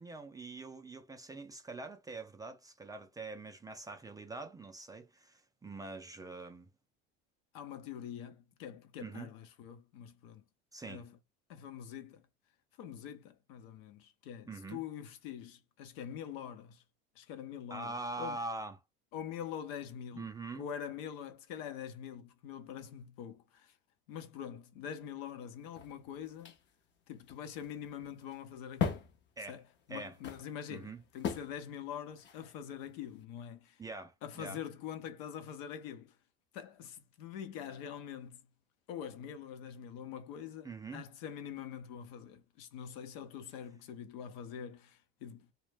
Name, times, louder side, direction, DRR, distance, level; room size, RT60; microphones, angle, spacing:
voice 1, 0.0-6.7 9.0-9.3 10.7-11.0 14.5-14.8 17.7-18.8 20.1-20.7 29.4-29.6 29.9-30.1 30.7-31.0 33.8-34.6 40.6-41.0, right 3 dB, 15° right, 0.3 m, -44 dB
voice 2, 7.5-10.4 10.9-11.2 11.5-12.2 12.8-16.8 17.2-18.4 19.1-23.8 24.1-26.5 27.1-29.1 29.5-29.6 29.9-33.8 34.2-36.2 36.5-38.4 38.9-45.5, left 9 dB, 75° left, 0.7 m, -44 dB
sound 1, 25.6-33.2, left 7 dB, 40° left, 0.6 m, -41 dB
2.1 x 2.1 x 3.2 m
supercardioid pair, 95°, 30 cm